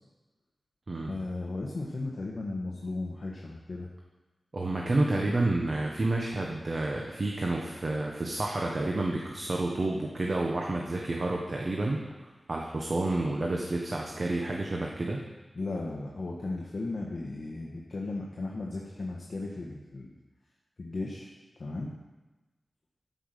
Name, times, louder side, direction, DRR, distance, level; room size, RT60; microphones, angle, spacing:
voice 1, 1.1-3.9 4.9-5.0 15.5-20.2 20.8-21.3 21.6-21.9, left 2 dB, 55° left, -2 dB, 1.5 m, -36 dB
voice 2, 4.5-15.2, right 2 dB, 50° right, -1 dB, 1.3 m, -30 dB
13.5 x 5.8 x 6.8 m, 1.1 s
wide cardioid pair, 95°, 0 cm